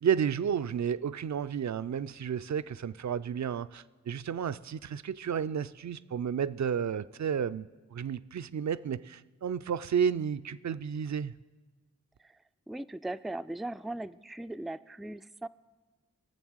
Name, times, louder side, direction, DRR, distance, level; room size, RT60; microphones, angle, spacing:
voice 1, 0.0-11.3, right 7 dB, 65° right, 0.4 m, -32 dB
voice 2, 12.7-15.5, right 2 dB, ahead, 0.3 m, -39 dB
21.5 x 7.2 x 6.3 m
cardioid pair, 40°, 31 cm